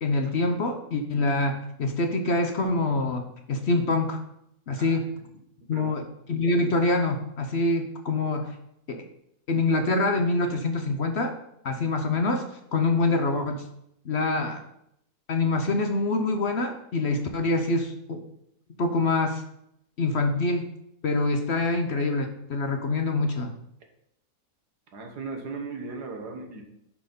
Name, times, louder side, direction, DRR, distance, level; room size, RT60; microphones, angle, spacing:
voice 1, 0.0-4.2 4.7-5.0 5.7-6.0 6.3-8.5 8.9-9.0 9.5-11.3 11.6-12.4 12.7-13.6 14.0-14.6 15.3-18.2 18.8-19.4 20.0-20.7 21.0-23.5, left 2 dB, 50° left, 5 dB, 1.0 m, -25 dB
voice 2, 5.7-6.0 24.9-26.6, right 4 dB, 90° right, 3 dB, 2.0 m, -37 dB
10.5 x 4.5 x 5.3 m, 0.78 s
omnidirectional pair, 1.7 m